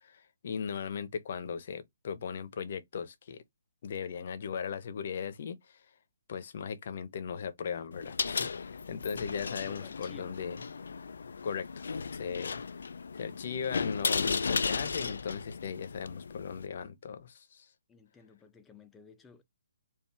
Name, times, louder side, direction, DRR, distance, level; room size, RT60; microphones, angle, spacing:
voice 1, 0.0-3.4 3.8-5.8 6.3-10.7 11.4-12.6 13.1-17.7, left 6 dB, 50° left, 0.9 m, -38 dB
sound 1, 7.9-16.7, left 5 dB, 75° left, 0.4 m, -35 dB
voice 2, 9.6-10.4 17.9-19.4, left 5 dB, 10° left, 0.7 m, -55 dB
4.6 x 2.6 x 3.4 m
hypercardioid pair, 150°, 0 cm